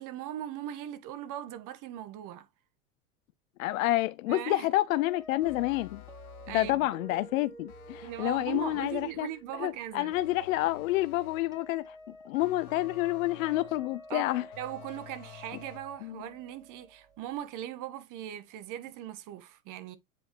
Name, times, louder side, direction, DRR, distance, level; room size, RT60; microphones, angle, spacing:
voice 1, 0.0-2.5 4.3-4.7 6.5-6.9 8.0-10.1 14.1-14.3 14.6-20.0, right 12 dB, 45° right, 1.5 m, -39 dB
voice 2, 3.6-6.0 6.5-9.3 9.6-12.0 12.3-14.4 16.0-16.1, left 16 dB, 65° left, 0.5 m, -29 dB
sound 1, 4.9-17.8, equal, 10° right, 2.7 m, -51 dB
sound 2, 5.4-6.9 7.7-9.2 10.1-11.6 12.4-13.8 14.5-16.0, left 10 dB, 85° left, 0.9 m, -50 dB
7.8 x 4.9 x 3.2 m
hypercardioid pair, 90°, 44 cm